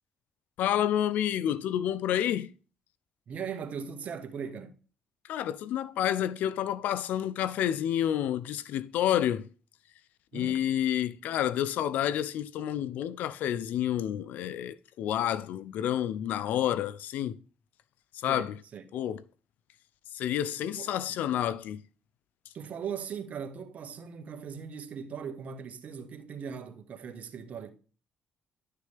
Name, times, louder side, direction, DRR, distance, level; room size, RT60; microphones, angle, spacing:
voice 1, 0.6-2.5 5.3-9.5 10.3-17.4 18.1-18.5 18.9-19.2 20.1-21.8, left 11 dB, 75° left, 0.6 m, -29 dB
voice 2, 3.3-4.7 10.3-10.6 18.3-18.8 20.8-21.2 22.5-27.7, right 7 dB, 60° right, 1.6 m, -39 dB
11.5 x 6.6 x 3.5 m
supercardioid pair, 60°, 3 cm